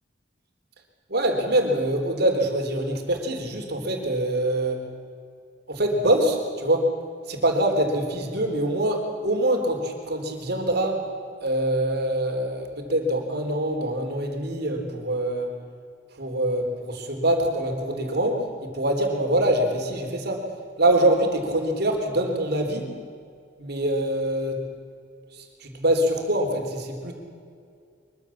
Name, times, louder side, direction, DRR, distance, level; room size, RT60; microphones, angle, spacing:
voice 1, 1.1-4.8 5.7-6.9 7.3-11.1 11.4-15.5 16.2-20.5 20.8-22.9 23.6-24.6 25.3-27.1, right 1 dB, 60° right, 3 dB, 3.7 m, -24 dB
23.5 x 23.0 x 7.3 m, 2.3 s
head